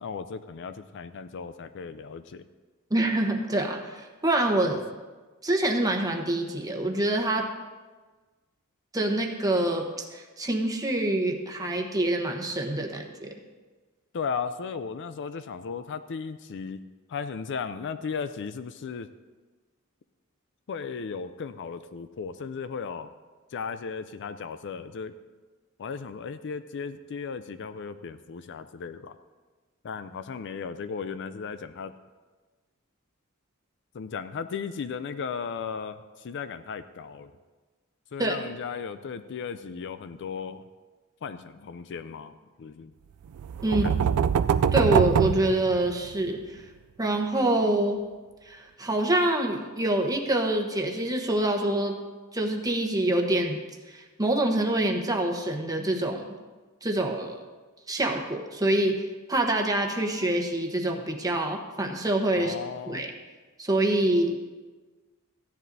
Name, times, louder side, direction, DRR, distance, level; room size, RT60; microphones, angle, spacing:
voice 1, 0.0-2.5 4.7-4.8 14.1-16.8 17.1-19.1 20.7-23.1 23.5-25.1 25.8-29.2 29.8-31.9 33.9-37.3 38.1-40.6 41.2-42.3 42.6-42.9 43.7-44.2 62.4-63.0, left 6 dB, 55° left, 11 dB, 0.4 m, -36 dB
voice 2, 2.9-4.8 5.4-7.5 8.9-13.3 38.2-38.4 43.6-43.9 44.7-46.6 47.0-48.0 48.4-51.9 52.3-53.6 53.9-56.3 56.8-57.4 57.9-62.5 62.9-63.1 63.6-64.4, right 1 dB, 15° right, 2 dB, 1.0 m, -26 dB
sound 1, 43.4-46.3, right 7 dB, 75° right, 0.3 m, -24 dB
15.5 x 10.0 x 2.7 m, 1.3 s
head